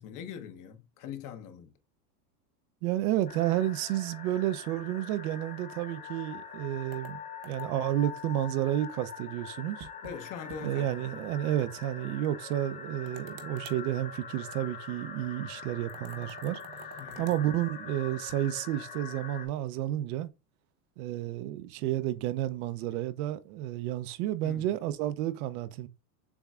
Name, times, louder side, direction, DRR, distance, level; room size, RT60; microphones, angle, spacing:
voice 1, 0.0-1.7 10.0-11.3 17.0-17.3 24.4-24.7, left 8 dB, 40° left, 0.9 m, -42 dB
voice 2, 2.8-7.2 7.5-9.9 10.6-16.6 17.2-20.3 21.0-25.9, right 13 dB, 60° right, 0.7 m, -31 dB
sound 1, 3.3-19.5, left 6 dB, 15° left, 0.6 m, -44 dB
sound 2, 6.9-7.9 9.8-10.2 10.5-10.6 11.0-11.1 13.1-13.8 15.9-17.4, right 7 dB, 40° right, 1.0 m, -49 dB
7.0 x 3.1 x 2.3 m
supercardioid pair, 125°, 49 cm